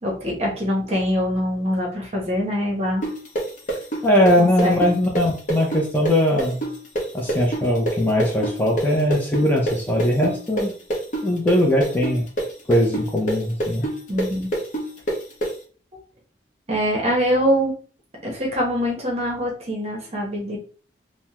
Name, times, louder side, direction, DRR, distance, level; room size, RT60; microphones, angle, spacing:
voice 1, 0.0-3.1 4.4-4.8 14.1-14.5 15.9-16.0 16.7-17.7 18.2-20.6, equal, 35° right, -1 dB, 0.8 m, -24 dB
sound 1, 3.0-10.6 10.9-15.5, right 1 dB, 45° left, 0.7 m, -25 dB
voice 2, 4.0-6.6 7.1-10.7 11.2-12.3 12.7-13.9, left 1 dB, 10° left, -2 dB, 0.5 m, -20 dB
3.4 x 2.0 x 2.8 m, 0.41 s
head